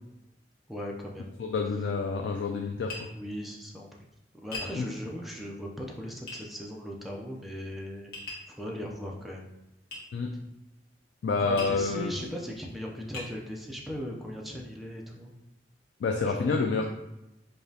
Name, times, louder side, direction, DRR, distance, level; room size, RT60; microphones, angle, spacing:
voice 1, 0.7-1.3 3.0-4.1 4.4-8.1 8.5-9.5 11.4-15.3 16.3-16.4, equal, ahead, -2 dB, 0.4 m, -38 dB
voice 2, 1.4-2.9 4.8-4.9 10.1-10.3 11.2-12.1 16.0-16.8, left 4 dB, 75° left, 2 dB, 0.3 m, -28 dB
Tap, 2.9-3.1 4.5-4.7 6.3-6.4 8.1-8.5 9.9-10.1 11.6-11.8 12.5-12.6 13.1-13.3, left 2 dB, 55° left, 1.1 m, -38 dB
4.9 x 2.2 x 2.7 m, 0.92 s
head